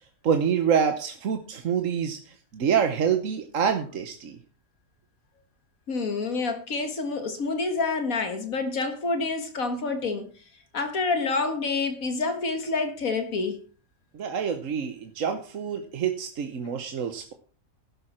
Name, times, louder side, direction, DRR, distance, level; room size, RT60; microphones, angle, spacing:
voice 1, 0.2-4.4 14.1-17.3, right 7 dB, 70° right, 1.4 m, -26 dB
voice 2, 5.9-10.3 10.7-13.6, left 3 dB, 75° left, 2.1 m, -28 dB
12.0 x 11.0 x 4.4 m
omnidirectional pair, 1.5 m